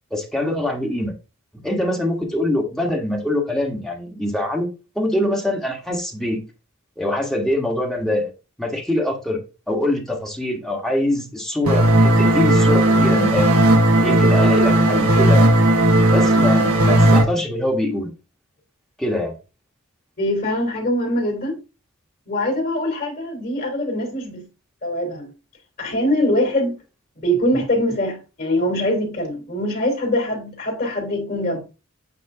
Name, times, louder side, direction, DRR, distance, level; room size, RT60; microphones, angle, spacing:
voice 1, 0.1-1.1 1.6-4.7 4.9-6.4 7.0-8.3 8.6-9.4 9.7-13.6 14.0-15.5 16.1-18.1 19.0-19.4, left 1 dB, ahead, 1.3 m, -23 dB
sound 1, 11.7-17.2, right 1 dB, 80° right, 1.2 m, -15 dB
voice 2, 20.2-21.6 22.3-24.4 24.8-25.3 25.8-26.8 27.1-31.6, left 1 dB, 40° left, 2.9 m, -23 dB
8.5 x 3.0 x 3.7 m
head